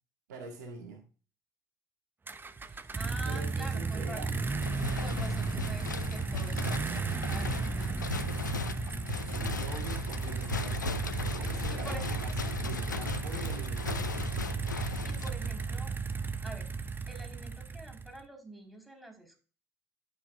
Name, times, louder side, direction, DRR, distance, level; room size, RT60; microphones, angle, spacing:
voice 1, 0.3-1.0 3.3-4.3 9.2-10.8 11.3-14.1, right 3 dB, 75° right, 3 dB, 1.6 m, -44 dB
sound 1, 2.3-18.2, right 4 dB, 20° right, 0.8 m, -34 dB
voice 2, 2.7-4.2 5.0-8.1 8.9-9.0 11.7-12.2 14.8-15.9 16.4-16.7 17.1-19.4, right 1 dB, ahead, 2 dB, 4.7 m, -46 dB
Brass instrument, 4.2-13.5, left 12 dB, 50° left, 0.9 m, -50 dB
sound 2, 4.6-15.8, left 5 dB, 85° left, 0.5 m, -38 dB
12.0 x 6.9 x 2.6 m, 0.35 s
figure-of-eight pair, 50°, 10 cm